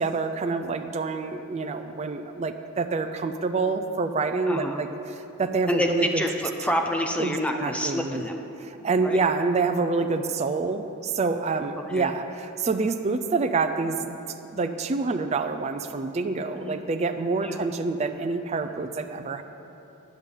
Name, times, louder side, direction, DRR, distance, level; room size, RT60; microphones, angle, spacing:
voice 1, 0.0-4.9 5.4-6.2 7.2-8.2 8.8-14.2 14.5-19.4, right 4 dB, 30° right, 7 dB, 0.4 m, -27 dB
voice 2, 4.5-4.8 5.7-8.4 9.0-9.2 11.9-12.1 16.5-16.8 17.4-17.6, equal, 5° left, 3 dB, 0.7 m, -28 dB
10.5 x 5.4 x 8.2 m, 2.9 s
head